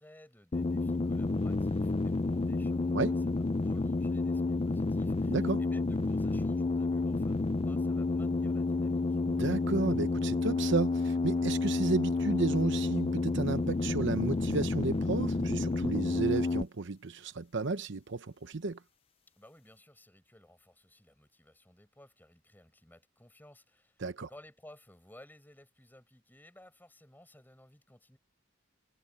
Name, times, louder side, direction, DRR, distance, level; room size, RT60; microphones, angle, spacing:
voice 1, 0.0-9.2 19.4-28.2, left 1 dB, 10° left, 7.5 m, -58 dB
sound 1, 0.5-16.6, left 3 dB, 30° left, 0.5 m, -30 dB
voice 2, 5.3-5.6 9.3-18.8 24.0-24.3, right 3 dB, 65° right, 0.9 m, -32 dB
head